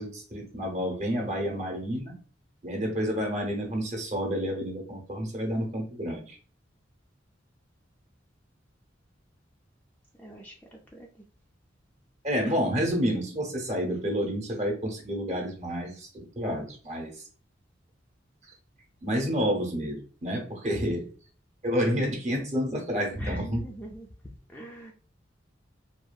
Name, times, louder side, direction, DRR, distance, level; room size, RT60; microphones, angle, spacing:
voice 1, 0.0-2.2 2.6-6.4 12.2-17.3 19.0-21.0 21.6-23.6, equal, 40° right, 1 dB, 0.8 m, -29 dB
voice 2, 10.2-10.5 10.9-11.1 20.8-21.1 23.1-24.1 24.5-24.9, equal, 10° left, -1 dB, 0.3 m, -39 dB
2.7 x 2.4 x 2.2 m, 0.39 s
head